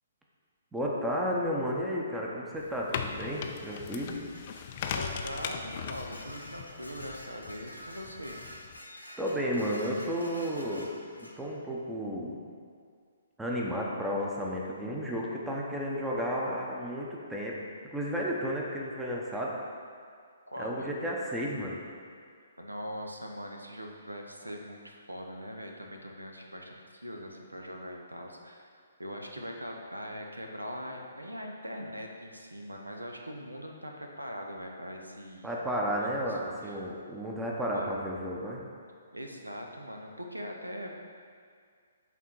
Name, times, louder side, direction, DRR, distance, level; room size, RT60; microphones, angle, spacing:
voice 1, 0.7-4.3 9.2-12.4 13.4-17.5 17.9-19.6 20.6-21.8 35.4-38.6, equal, 5° right, -3 dB, 0.8 m, -32 dB
sound 1, 2.6-8.8, left 7 dB, 40° left, 0.4 m, -39 dB
Dishes pots and pans, 3.7-11.4, left 1 dB, 85° left, 1.0 m, -48 dB
voice 2, 4.9-8.4 20.5-20.9 22.6-28.7 29.0-35.5 35.8-36.9 37.7-38.0 39.1-40.9, equal, 85° right, 2 dB, 0.7 m, -41 dB
8.2 x 3.6 x 4.4 m, 2.1 s
figure-of-eight pair, 125°, 0 cm